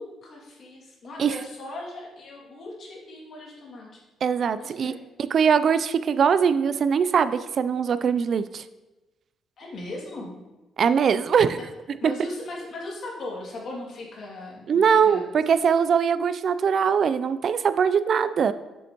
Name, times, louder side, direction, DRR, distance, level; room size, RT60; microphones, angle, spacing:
voice 1, 0.0-4.0 4.6-5.0 9.6-10.3 11.5-11.6 12.0-15.3, left 2 dB, 55° left, -2 dB, 2.3 m, -38 dB
voice 2, 4.2-4.9 5.3-8.6 10.8-11.6 12.0-12.1 14.7-18.5, right 7 dB, 55° right, 13 dB, 0.3 m, -21 dB
7.1 x 7.0 x 2.9 m, 1.1 s
cardioid pair, 90°, 0 cm